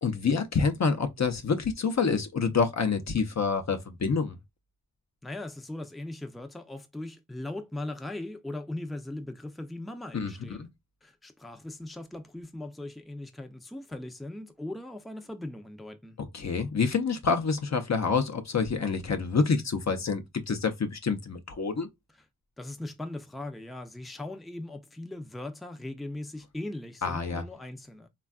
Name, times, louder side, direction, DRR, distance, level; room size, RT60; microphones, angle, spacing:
voice 1, 0.0-4.4 10.1-10.3 10.6-10.7 16.3-21.9 27.0-27.4, left 5 dB, 55° left, 0.6 m, -27 dB
voice 2, 5.2-10.7 11.0-16.2 22.1-22.2 22.6-28.1, left 1 dB, ahead, 0.5 m, -39 dB
3.3 x 2.3 x 2.3 m
cardioid pair, 45°, 34 cm